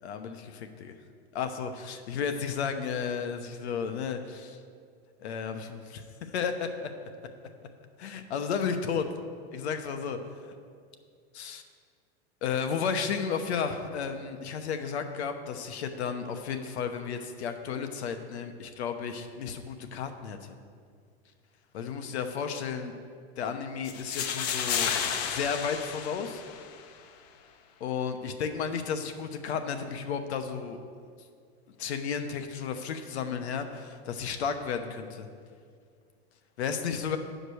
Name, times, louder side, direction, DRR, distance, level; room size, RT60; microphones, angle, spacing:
voice 1, 0.0-0.9 1.3-4.6 5.2-6.9 8.0-9.1 9.5-10.2 11.3-11.6 12.4-20.4 21.7-22.9 23.4-24.9 25.2-26.4 27.8-30.8 31.8-35.3 36.6-37.2, left 6 dB, 80° left, 7 dB, 1.0 m, -33 dB
sound 1, 23.8-26.9, left 7 dB, 40° left, 0.6 m, -32 dB
9.9 x 5.1 x 6.3 m, 2.1 s
supercardioid pair, 165°, 32 cm